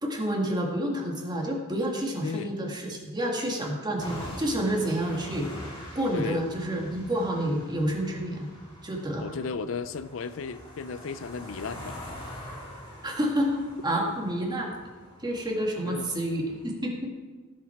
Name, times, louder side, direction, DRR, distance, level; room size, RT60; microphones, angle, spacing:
voice 1, 0.0-5.5 6.0-8.5 8.8-9.3 13.0-14.7 15.2-17.1, right 1 dB, 20° right, 0 dB, 1.9 m, -29 dB
sound 1, 4.0-16.7, equal, 20° left, 3.9 m, -44 dB
voice 2, 6.1-6.4 9.2-12.0 15.8-16.1, left 5 dB, 65° left, 14 dB, 0.4 m, -34 dB
17.5 x 7.5 x 4.5 m, 1.4 s
head